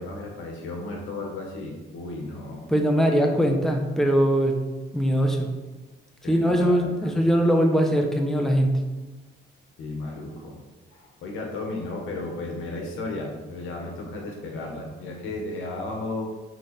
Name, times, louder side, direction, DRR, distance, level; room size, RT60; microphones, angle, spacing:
voice 1, 0.0-2.6 6.2-7.1 9.8-10.6 10.9-16.3, left 2 dB, 85° left, 1 dB, 1.6 m, -34 dB
voice 2, 2.7-4.6 4.9-5.5 6.3-8.8, equal, ahead, 2 dB, 1.0 m, -21 dB
8.1 x 4.0 x 4.3 m, 1.2 s
cardioid pair, 90°, 20 cm